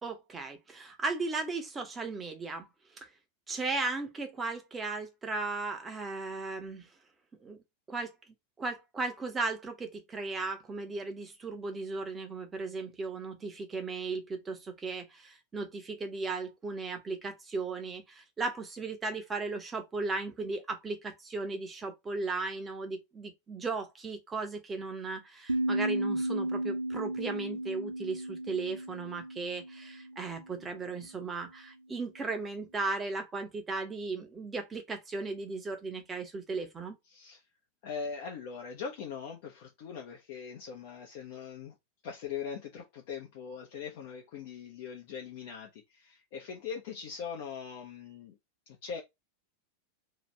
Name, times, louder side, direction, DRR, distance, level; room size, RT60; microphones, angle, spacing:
voice 1, 0.0-2.7 2.9-3.1 3.5-6.9 7.4-7.6 7.9-8.1 8.6-37.0, right 3 dB, 15° right, 0.9 m, -36 dB
sound 1, 25.5-30.6, right 1 dB, 80° right, 0.6 m, -34 dB
voice 2, 37.1-37.4 37.8-41.8 42.0-48.4 48.7-49.0, left 6 dB, 50° left, 0.6 m, -41 dB
2.8 x 2.5 x 3.2 m
figure-of-eight pair, 90°, 0 cm